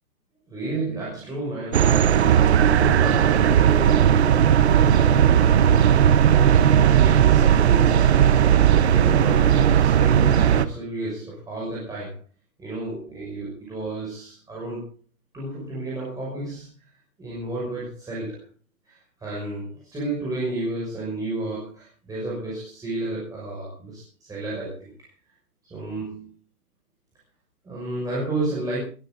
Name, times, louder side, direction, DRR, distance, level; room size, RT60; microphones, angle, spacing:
voice 1, 0.5-12.2 12.6-14.9 15.3-18.5 18.8-25.1 25.6-26.3 27.6-28.8, right 2 dB, 5° right, -6 dB, 6.1 m, -32 dB
sound 1, 1.7-10.7, right 9 dB, 45° right, 1.0 m, -17 dB
21.5 x 13.5 x 3.9 m, 0.38 s
hypercardioid pair, 155°, 46 cm